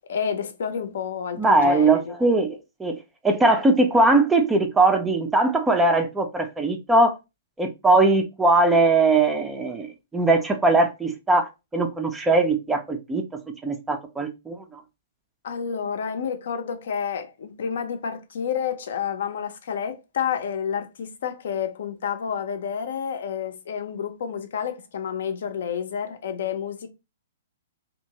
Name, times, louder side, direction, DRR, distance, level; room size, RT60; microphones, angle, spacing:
voice 1, 0.1-2.1 15.4-26.9, left 7 dB, 55° left, 0.5 m, -29 dB
voice 2, 1.4-3.0 3.2-7.1 7.6-13.2 13.6-14.8, right 2 dB, 10° right, 0.4 m, -20 dB
2.7 x 2.5 x 2.8 m
figure-of-eight pair, 115°, 0 cm